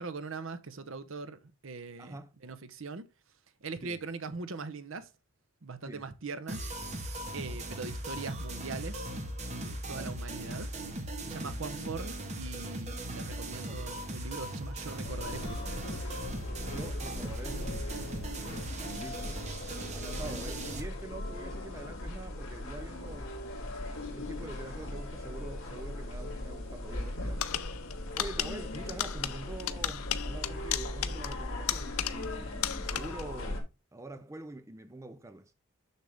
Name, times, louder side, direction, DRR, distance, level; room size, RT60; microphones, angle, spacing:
voice 1, 0.0-3.1 3.6-5.1 5.6-6.6 7.3-9.1 9.4-10.7 11.3-16.0, right 4 dB, 60° right, 0.8 m, -41 dB
voice 2, 2.0-2.3 3.8-4.0 5.9-6.0 7.4-7.6 9.9-10.2 11.4-11.6 13.4-13.9 16.7-18.2 19.0-19.5 19.9-23.3 24.1-27.5 28.1-35.5, right 2 dB, 15° right, 0.5 m, -45 dB
sound 1, 6.5-20.8, right 1 dB, 30° right, 1.4 m, -38 dB
sound 2, 15.0-33.6, left 1 dB, 65° left, 2.8 m, -39 dB
sound 3, 27.4-32.4 32.6-33.3, left 11 dB, 85° left, 0.6 m, -35 dB
6.6 x 6.5 x 3.4 m
head